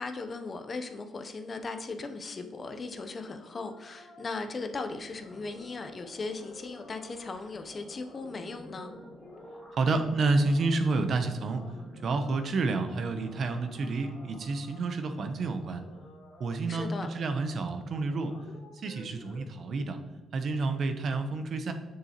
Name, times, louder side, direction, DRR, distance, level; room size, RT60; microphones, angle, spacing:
voice 1, 0.0-8.9 16.7-17.1, left 3 dB, 40° left, 7 dB, 0.7 m, -38 dB
sound 1, 2.9-19.4, left 2 dB, 85° left, 1.5 m, -54 dB
sound 2, 4.9-14.5, right 1 dB, 10° right, 1.5 m, -52 dB
voice 2, 9.8-11.7 12.0-15.8 16.4-18.3 18.7-20.0 20.3-21.7, right 3 dB, 55° right, 7 dB, 0.8 m, -29 dB
6.8 x 6.6 x 2.9 m, 1.2 s
cardioid pair, 90°, 0 cm